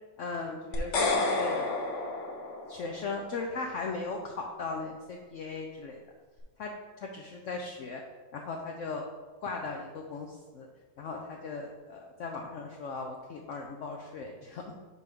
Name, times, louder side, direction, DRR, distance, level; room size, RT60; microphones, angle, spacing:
voice 1, 0.2-1.7 2.7-6.0 6.6-6.7 7.0-8.0 8.3-9.0 9.4-10.7 11.0-14.7, left 4 dB, 70° left, 1 dB, 0.7 m, -37 dB
sound 1, 0.7-3.0, left 2 dB, 50° left, 1.0 m, -30 dB
6.4 x 3.4 x 5.3 m, 1.4 s
omnidirectional pair, 1.9 m